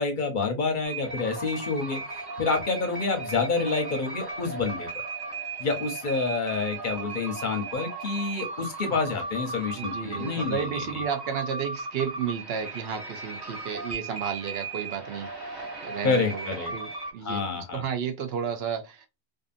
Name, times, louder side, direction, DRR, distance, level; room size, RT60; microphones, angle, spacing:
voice 1, 0.0-4.9 5.6-11.0 16.0-16.7 17.2-17.8, left 4 dB, 55° left, 0.7 m, -28 dB
sound 1, 0.8-17.1, right 3 dB, 25° right, 0.6 m, -36 dB
voice 2, 9.8-15.3 15.8-19.0, right 7 dB, 70° right, 0.8 m, -32 dB
2.6 x 2.5 x 2.4 m
omnidirectional pair, 1.1 m